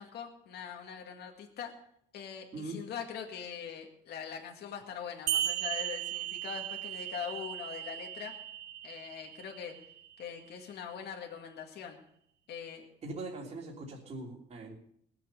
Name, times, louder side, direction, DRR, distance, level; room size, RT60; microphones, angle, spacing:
voice 1, 0.0-1.7 2.1-8.3 8.8-9.7 10.2-12.0 12.5-12.8, left 8 dB, 65° left, 2 dB, 2.1 m, -42 dB
voice 2, 2.5-2.9 13.0-14.7, right 2 dB, 35° right, -2 dB, 3.2 m, -41 dB
sound 1, 5.3-10.3, right 12 dB, 60° right, 0.5 m, -37 dB
20.0 x 7.6 x 6.8 m, 0.70 s
cardioid pair, 150°, 18 cm